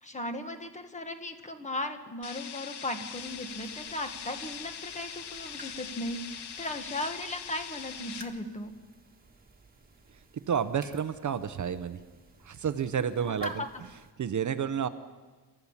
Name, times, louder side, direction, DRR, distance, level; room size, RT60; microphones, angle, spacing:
voice 1, 0.0-8.7 13.3-13.8, left 1 dB, 15° left, 6 dB, 1.5 m, -37 dB
sound 1, 2.2-8.2, left 8 dB, 75° left, 1.4 m, -42 dB
sound 2, 3.1-14.1, right 3 dB, 20° right, 1.7 m, -55 dB
voice 2, 10.1-12.0 12.4-13.6 14.2-14.9, right 7 dB, 45° right, 11 dB, 0.8 m, -30 dB
29.0 x 13.5 x 7.2 m, 1.3 s
wide cardioid pair, 180°, 41 cm